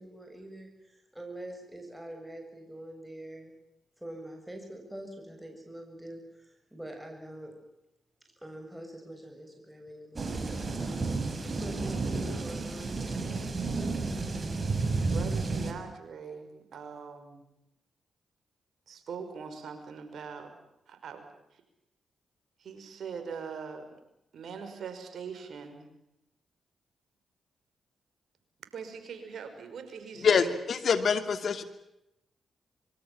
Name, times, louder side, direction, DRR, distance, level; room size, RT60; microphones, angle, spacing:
voice 1, 0.0-3.5 4.0-7.5 8.4-10.5 11.4-13.9, right 1 dB, 10° right, 3 dB, 7.3 m, -44 dB
sound 1, 10.2-15.7, right 3 dB, 40° right, 5.6 m, -31 dB
voice 2, 15.0-17.4 18.9-20.5 20.9-21.2 21.5-21.6 22.6-23.9 24.3-25.9 28.7-30.5, right 6 dB, 70° right, 7 dB, 5.5 m, -42 dB
voice 3, 30.2-31.6, left 6 dB, 65° left, 10 dB, 2.7 m, -25 dB
25.5 x 23.5 x 7.5 m, 0.84 s
supercardioid pair, 45°, 0 cm